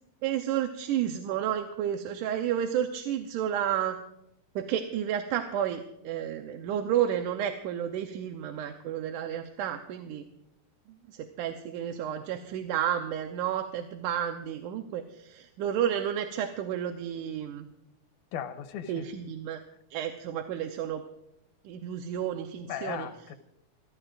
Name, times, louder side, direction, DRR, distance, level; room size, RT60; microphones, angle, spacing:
voice 1, 0.2-4.0 4.6-10.2 11.1-17.7 18.9-19.6 19.9-21.0 21.7-23.1, right 10 dB, 85° right, 2.3 m, -31 dB
voice 2, 18.3-19.1 22.7-23.4, left 9 dB, 80° left, 2.4 m, -37 dB
27.0 x 14.0 x 2.5 m
omnidirectional pair, 3.6 m